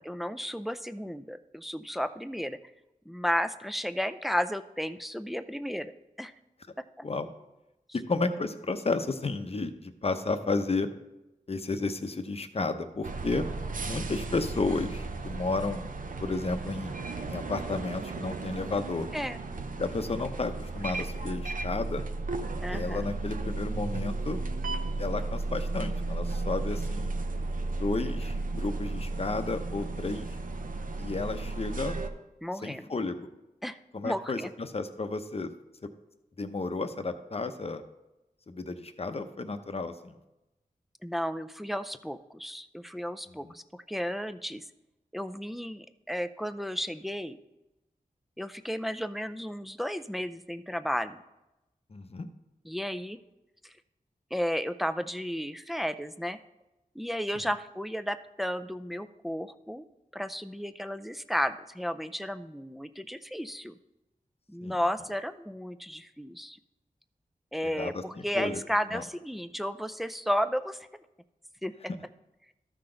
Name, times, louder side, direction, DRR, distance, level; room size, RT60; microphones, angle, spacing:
voice 1, 0.0-2.6 3.1-5.9 6.2-6.3 7.0-7.1 19.1-19.4 22.6-23.1 32.4-32.9 33.6-33.8 34.0-34.5 41.0-43.6 43.9-44.6 45.1-47.4 48.4-51.2 52.6-53.2 53.6-53.7 54.3-56.4 57.0-59.8 60.1-63.7 64.5-66.6 67.5-70.8 71.6-71.7, equal, ahead, 11 dB, 0.4 m, -33 dB
voice 2, 7.9-10.9 11.5-13.4 13.9-15.8 16.2-17.0 17.3-19.1 19.8-22.0 22.7-24.4 25.0-27.1 27.7-30.3 31.0-32.0 32.6-33.3 33.9-35.5 36.4-37.8 38.5-40.1 43.4-43.5 51.9-52.3 64.6-64.8 67.6-68.0 68.3-68.6 68.9-69.0, left 3 dB, 40° left, 8 dB, 0.7 m, -32 dB
sound 1, 13.0-32.1, right 3 dB, 65° right, 0.7 m, -34 dB
13.5 x 5.9 x 3.8 m, 0.95 s
wide cardioid pair, 85°, 15 cm